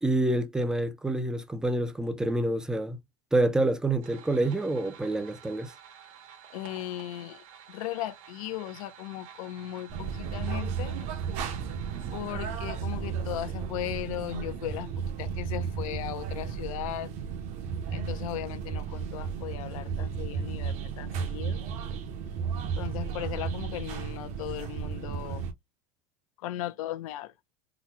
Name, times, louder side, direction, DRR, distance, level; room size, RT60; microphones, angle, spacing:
voice 1, 0.0-3.0 3.3-5.7, right 2 dB, 5° right, 0.3 m, -27 dB
sound 1, 4.0-12.3, right 8 dB, 80° right, 1.5 m, -51 dB
voice 2, 6.5-11.0 12.1-14.9 15.2-17.1 17.9-21.6 22.8-25.5 26.4-27.3, left 14 dB, 85° left, 0.6 m, -37 dB
sound 2, 9.9-25.5, right 6 dB, 40° right, 0.7 m, -34 dB
3.9 x 2.1 x 2.7 m
supercardioid pair, 165°, 17 cm